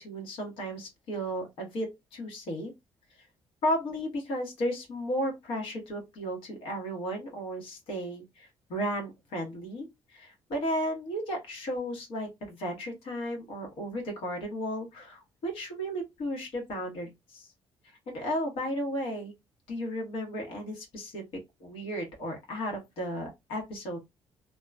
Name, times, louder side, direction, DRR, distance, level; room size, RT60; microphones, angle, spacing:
voice 1, 0.0-2.7 3.6-17.5 18.1-19.3 19.7-24.0, equal, 80° left, 1 dB, 1.3 m, -34 dB
2.9 x 2.2 x 2.3 m, 0.20 s
cardioid pair, 150°, 9 cm